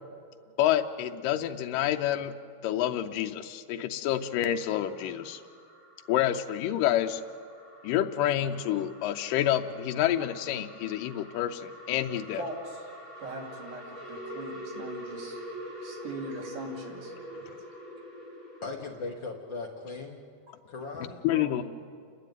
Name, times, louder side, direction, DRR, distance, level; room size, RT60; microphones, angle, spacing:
voice 1, 0.6-2.4 2.6-5.4 6.1-7.2 7.8-12.4 21.2-21.6, left 12 dB, 90° left, 5 dB, 2.3 m, -28 dB
sound 1, 4.0-19.2, equal, 25° right, 2.8 m, -45 dB
voice 2, 12.3-12.9 13.2-15.4 15.8-17.1 21.3-21.6, right 2 dB, 70° right, 1 dB, 4.1 m, -40 dB
voice 3, 18.6-20.2 20.7-21.2, left 3 dB, 60° left, 1 dB, 1.2 m, -38 dB
29.5 x 12.0 x 9.2 m, 2.2 s
omnidirectional pair, 3.8 m